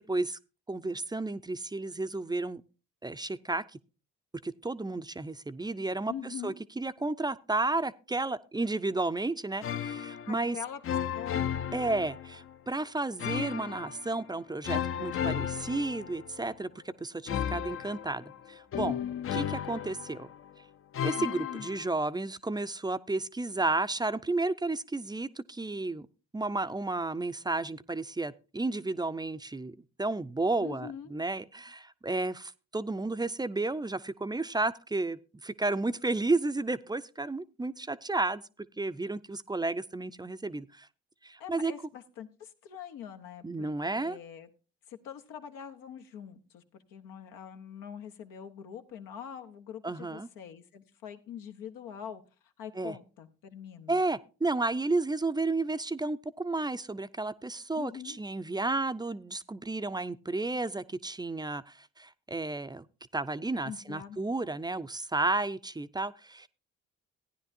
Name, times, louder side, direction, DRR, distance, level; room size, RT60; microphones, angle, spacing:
voice 1, 0.1-0.4 0.7-2.6 3.0-3.6 4.4-10.6 11.7-19.0 19.3-20.3 21.0-26.1 26.3-38.4 38.8-40.9 41.2-41.7 43.4-44.2 49.8-50.3 52.8-52.9 53.9-62.9 63.1-66.5, right 2 dB, 15° right, 14 dB, 0.4 m, -32 dB
voice 2, 6.1-6.6 10.3-11.4 21.2-21.7 30.6-31.2 41.4-44.5 44.9-46.6 46.9-52.2 52.6-54.0 57.8-58.2 63.6-64.2, left 8 dB, 85° left, 6 dB, 1.0 m, -44 dB
sound 1, 9.6-10.5 10.8-12.5 13.2-14.2 14.6-16.6 17.3-20.5 20.9-21.9, left 9 dB, 40° left, 0.5 m, -34 dB
15.0 x 9.9 x 2.6 m, 0.33 s
supercardioid pair, 60°, 33 cm